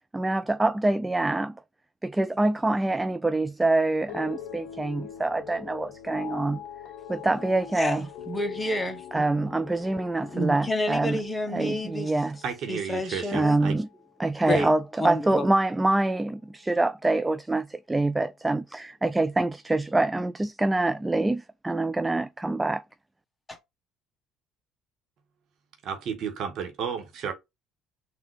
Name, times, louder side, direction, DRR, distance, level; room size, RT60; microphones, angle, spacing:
voice 1, 0.1-1.6 2.0-6.6 7.1-8.1 9.1-11.2 11.5-12.4 13.3-13.9 14.2-22.8, right 2 dB, 15° right, 0.3 m, -25 dB
sound 1, 4.1-14.4 14.7-15.3, left 9 dB, 75° left, 0.5 m, -43 dB
voice 2, 7.7-9.2 10.2-12.1 12.7-13.6 14.5-14.7 15.0-15.5 23.5-23.6, left 1 dB, 15° left, 1.4 m, -29 dB
voice 3, 12.4-13.8 14.5-14.7 25.8-27.3, right 7 dB, 60° right, 1.4 m, -32 dB
4.0 x 2.8 x 4.7 m
supercardioid pair, 75°, 0 cm